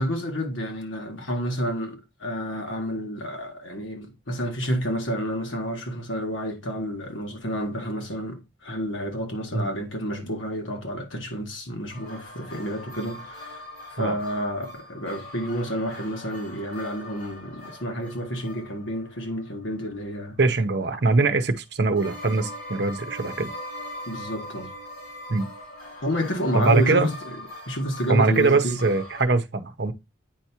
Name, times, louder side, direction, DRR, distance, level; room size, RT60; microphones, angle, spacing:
voice 1, 0.0-13.6 13.9-20.4 24.1-24.7 26.0-27.4 27.7-28.8, equal, 85° left, 1.6 m, -30 dB
sound 1, 11.9-20.5 22.0-29.2, left 1 dB, 55° left, 4.3 m, -41 dB
voice 2, 20.4-23.5 25.3-25.5 26.5-27.1 28.1-29.9, right 3 dB, 55° right, 0.7 m, -22 dB
8.8 x 4.6 x 2.8 m
head